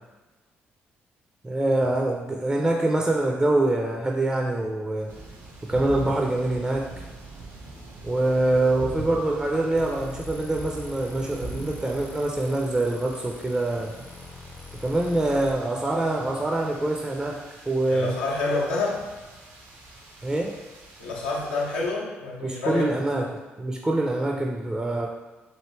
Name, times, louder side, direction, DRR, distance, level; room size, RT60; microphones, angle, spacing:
voice 1, 1.4-5.1 5.7-6.9 8.0-13.9 14.8-18.2 20.2-20.5 22.4-23.3 23.6-25.1, right 2 dB, 15° right, 0 dB, 0.4 m, -25 dB
sound 1, 5.1-21.9, right 2 dB, 65° right, 0.6 m, -43 dB
sound 2, 9.8-15.5, left 4 dB, 35° left, 0.5 m, -45 dB
voice 2, 17.9-19.0 21.0-22.8, left 3 dB, 85° left, -4 dB, 0.6 m, -28 dB
3.0 x 2.6 x 3.1 m, 1.2 s
hypercardioid pair, 45°, 5 cm